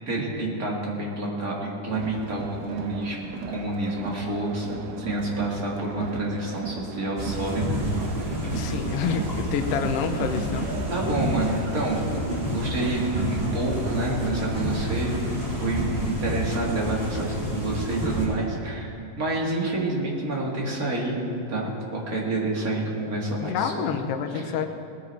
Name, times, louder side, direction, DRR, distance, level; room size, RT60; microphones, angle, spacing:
voice 1, 0.1-3.2 3.5-7.8 10.9-12.1 12.5-15.2 15.5-21.2 21.5-23.9 24.3-24.4, right 2 dB, 35° right, -2 dB, 1.8 m, -28 dB
Crowd, 1.9-15.5, right 7 dB, 80° right, 2.3 m, -38 dB
sound 1, 7.2-18.3, equal, 15° right, 2.6 m, -29 dB
voice 2, 8.5-10.8 23.4-24.7, left 6 dB, 85° left, 6 dB, 1.3 m, -28 dB
19.0 x 9.9 x 4.5 m, 2.6 s
omnidirectional pair, 3.8 m